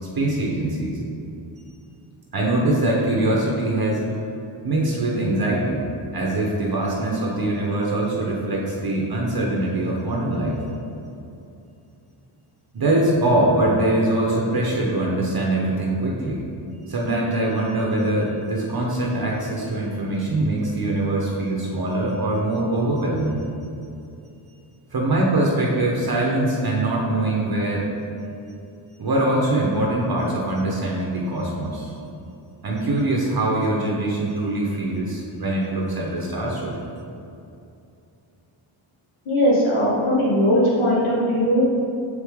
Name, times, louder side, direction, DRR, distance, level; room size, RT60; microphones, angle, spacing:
voice 1, 0.2-1.0 2.3-4.0 4.6-5.9 6.1-10.6 12.7-16.4 16.9-23.4 24.9-27.9 29.0-31.9 32.6-36.8, right 1 dB, 50° right, -3 dB, 0.9 m, -23 dB
voice 2, 39.2-41.8, equal, 80° left, -7 dB, 1.3 m, -19 dB
6.8 x 4.8 x 3.5 m, 2.7 s
wide cardioid pair, 140°, 48 cm